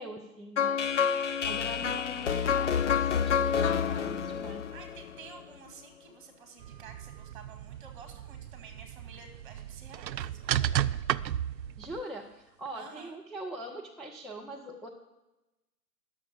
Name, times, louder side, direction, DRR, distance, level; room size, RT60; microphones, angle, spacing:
voice 1, 0.0-0.9 1.4-4.7 11.8-14.9, right 1 dB, ahead, -3 dB, 0.3 m, -42 dB
sound 1, 0.6-5.5, left 7 dB, 50° left, 0.6 m, -28 dB
voice 2, 1.0-1.5 4.7-11.1 12.7-13.2, right 5 dB, 30° right, 6 dB, 1.8 m, -51 dB
sound 2, 6.6-12.0, right 11 dB, 85° right, 0.5 m, -34 dB
10.0 x 6.8 x 7.1 m, 1.0 s
hypercardioid pair, 155°, 49 cm